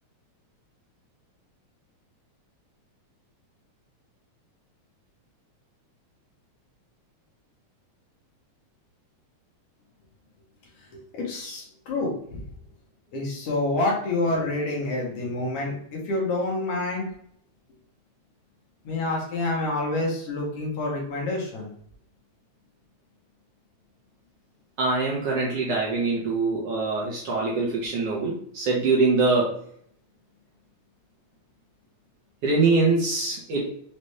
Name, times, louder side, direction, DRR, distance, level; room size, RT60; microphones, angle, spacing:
voice 1, 10.9-12.4 13.1-17.1 18.9-21.7, left 2 dB, 60° left, -2 dB, 1.9 m, -28 dB
voice 2, 24.8-29.6 32.4-33.7, right 3 dB, 65° right, -3 dB, 1.6 m, -23 dB
5.4 x 2.5 x 3.2 m, 0.64 s
omnidirectional pair, 3.4 m